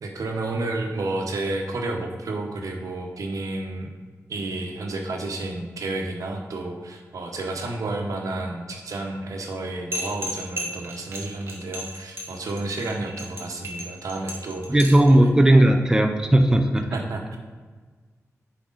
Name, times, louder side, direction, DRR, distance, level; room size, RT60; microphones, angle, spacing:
voice 1, 0.0-3.9 4.3-15.3 16.9-17.4, right 2 dB, 80° right, 2 dB, 1.1 m, -31 dB
sound 1, 9.9-15.1, equal, 45° right, 1.5 m, -34 dB
voice 2, 14.7-16.8, right 1 dB, 10° right, 5 dB, 0.6 m, -16 dB
10.0 x 4.7 x 4.0 m, 1.4 s
wide cardioid pair, 110°, 6 cm